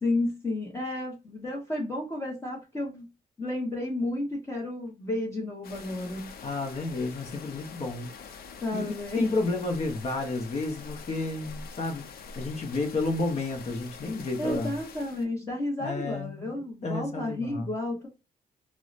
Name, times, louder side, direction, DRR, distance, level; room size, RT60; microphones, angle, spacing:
voice 1, 0.0-3.1 3.4-6.3 8.6-9.3 14.4-18.1, left 1 dB, 20° left, 0.9 m, -32 dB
sound 1, 5.6-15.3, left 5 dB, 85° left, 0.6 m, -45 dB
voice 2, 6.4-8.1 8.7-12.0 12.3-14.7 15.8-16.5 16.8-17.7, left 3 dB, 45° left, 0.7 m, -31 dB
4.5 x 2.1 x 2.4 m
cardioid pair, 120°, 15 cm